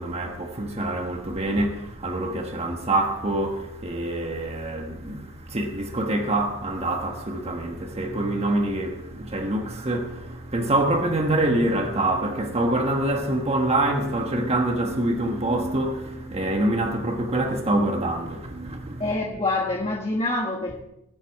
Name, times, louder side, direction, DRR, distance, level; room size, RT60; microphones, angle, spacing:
voice 1, 0.0-19.2, right 1 dB, 30° right, 1.2 m, -25 dB
voice 2, 19.0-20.8, left 2 dB, 25° left, 1.4 m, -26 dB
19.5 x 9.2 x 4.7 m
head